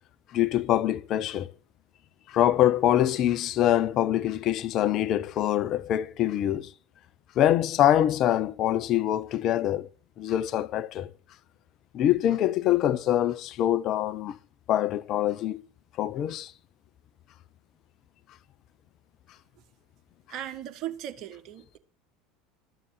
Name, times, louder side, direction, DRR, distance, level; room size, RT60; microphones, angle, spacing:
voice 1, 0.3-1.5 2.3-6.7 7.4-9.9 10.2-11.1 11.9-14.4 14.7-15.6 16.0-16.5, left 12 dB, 45° left, 0.7 m, -24 dB
voice 2, 20.3-21.8, right 12 dB, 50° right, 1.5 m, -37 dB
13.0 x 6.8 x 8.1 m
figure-of-eight pair, 75°, 0 cm